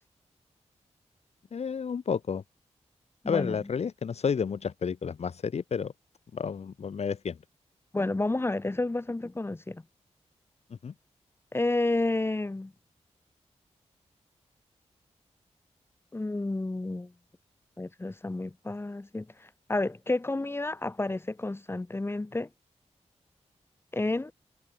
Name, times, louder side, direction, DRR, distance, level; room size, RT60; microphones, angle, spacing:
voice 1, 1.5-2.4 3.3-5.9 6.3-7.4 10.7-10.9, left 6 dB, 65° left, 1.7 m, -31 dB
voice 2, 3.2-3.6 7.9-9.8 11.5-12.7 16.1-17.1 17.8-22.5 23.9-24.3, left 2 dB, 20° left, 5.9 m, -30 dB
wide cardioid pair, 150°, 12 cm